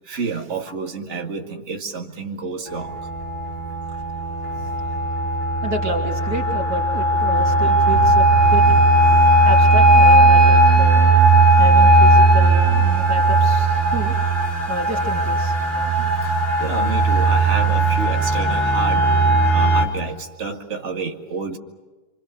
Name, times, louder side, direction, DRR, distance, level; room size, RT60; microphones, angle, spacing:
voice 1, 0.0-3.1 4.4-4.7 7.4-9.3 15.7-19.1 19.5-21.6, right 4 dB, 50° right, 1 dB, 2.4 m, -30 dB
sound 1, 2.7-19.8, right 2 dB, 35° left, 5.1 m, -16 dB
voice 2, 5.6-8.7 9.5-11.0 11.5-14.1 14.7-15.6, right 2 dB, 90° right, 2 dB, 3.6 m, -30 dB
29.5 x 25.5 x 6.5 m, 1.2 s
omnidirectional pair, 1.6 m